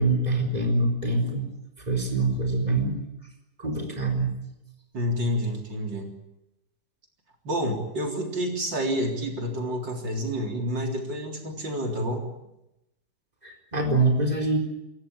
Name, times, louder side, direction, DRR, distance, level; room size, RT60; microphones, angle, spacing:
voice 1, 0.0-1.5 1.9-3.0 3.6-4.3 13.4-14.6, right 2 dB, 20° right, 2 dB, 4.4 m, -24 dB
voice 2, 4.9-6.1 7.4-12.3, equal, 85° right, 2 dB, 4.4 m, -29 dB
27.0 x 14.5 x 10.0 m, 0.88 s
omnidirectional pair, 1.9 m